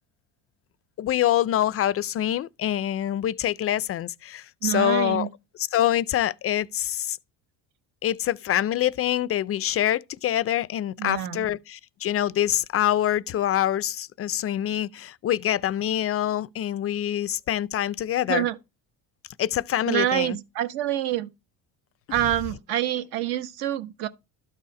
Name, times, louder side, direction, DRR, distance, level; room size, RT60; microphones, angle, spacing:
voice 1, 1.0-5.3 5.6-7.2 8.0-18.5 19.4-20.4, left 11 dB, 40° left, 0.4 m, -25 dB
voice 2, 4.6-5.3 11.0-11.5 18.3-18.6 19.8-21.3 22.1-24.1, right 13 dB, 75° right, 1.3 m, -26 dB
12.5 x 4.2 x 4.8 m
supercardioid pair, 95°, 38 cm